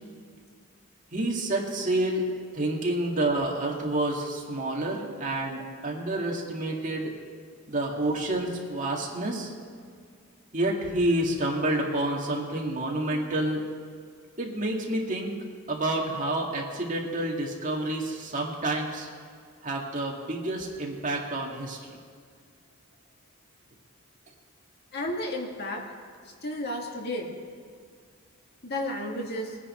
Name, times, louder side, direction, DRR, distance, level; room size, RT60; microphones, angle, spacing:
voice 1, 1.1-2.3 2.5-7.1 7.7-9.5 10.5-13.6 14.4-15.3 15.7-19.1 19.6-21.8, right 1 dB, 40° right, -1 dB, 2.1 m, -29 dB
voice 2, 24.9-25.8 26.4-27.3 28.6-29.6, left 1 dB, 50° left, 0 dB, 2.1 m, -32 dB
21.5 x 9.9 x 4.4 m, 2.1 s
head